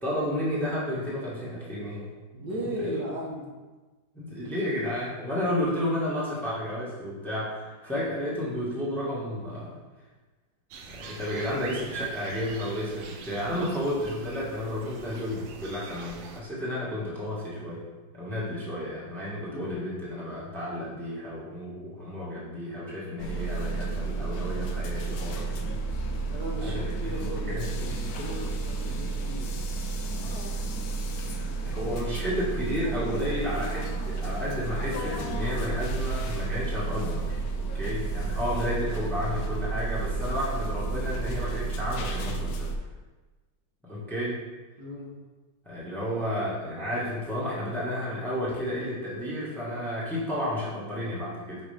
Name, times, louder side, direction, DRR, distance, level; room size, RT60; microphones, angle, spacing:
voice 1, 0.0-2.1 2.6-2.9 4.1-9.7 10.9-17.8 18.1-25.8 26.6-26.9 27.2-27.8 31.6-42.7 43.9-44.4 45.6-51.6, left 1 dB, ahead, -7 dB, 1.3 m, -32 dB
voice 2, 2.3-3.5 19.5-19.8 26.3-29.5 30.2-30.4 44.8-45.2, equal, 65° right, -3 dB, 1.6 m, -37 dB
sound 1, 10.7-16.4, right 5 dB, 85° right, 1.5 m, -43 dB
sound 2, 23.2-42.7, right 3 dB, 65° left, 1.0 m, -31 dB
6.0 x 4.9 x 3.4 m, 1.2 s
omnidirectional pair, 2.1 m